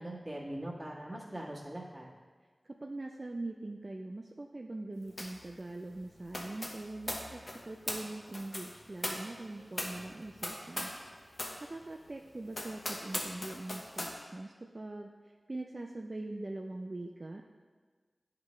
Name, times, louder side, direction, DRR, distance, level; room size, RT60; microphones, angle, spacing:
voice 1, 0.0-2.1, right 1 dB, 15° right, -4 dB, 1.6 m, -41 dB
voice 2, 2.6-10.9 11.3-15.1 15.5-17.4, right 2 dB, 45° right, 2 dB, 0.4 m, -42 dB
sound 1, 5.2-5.5 5.7-11.1 11.3-11.6 12.0-12.1 12.5-14.2, left 1 dB, 45° left, 0.9 m, -40 dB
9.2 x 4.9 x 3.2 m, 1.5 s
wide cardioid pair, 55°, 0 cm